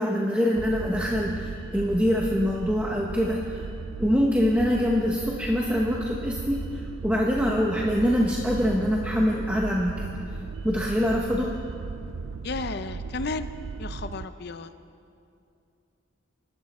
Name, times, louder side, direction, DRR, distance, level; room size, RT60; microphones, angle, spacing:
voice 1, 0.0-3.7 4.0-10.1 10.6-11.5, equal, 5° right, -2 dB, 1.0 m, -24 dB
sound 1, 0.5-14.3, right 4 dB, 75° right, 0.4 m, -37 dB
sound 2, 3.4-11.3, equal, 15° left, 1.4 m, -44 dB
voice 2, 12.4-13.5 13.8-14.7, left 3 dB, 50° left, 11 dB, 0.6 m, -33 dB
25.0 x 12.5 x 4.3 m, 2.5 s
head